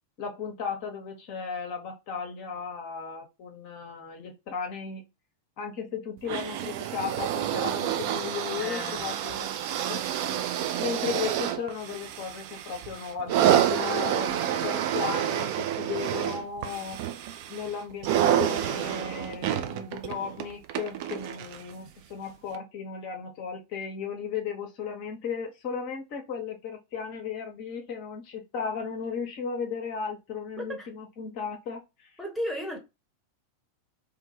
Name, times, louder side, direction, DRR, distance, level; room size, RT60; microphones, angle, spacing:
voice 1, 0.2-5.1 5.6-9.5 9.9-10.1 10.8-17.0 17.5-32.2, left 6 dB, 45° left, 0.6 m, -35 dB
sound 1, 6.2-21.7 22.5-22.6, right 10 dB, 50° right, 0.3 m, -28 dB
voice 2, 8.6-9.1 30.6-30.9 32.2-32.8, equal, ahead, 0.9 m, -34 dB
2.3 x 2.2 x 2.7 m
figure-of-eight pair, 90°, 0 cm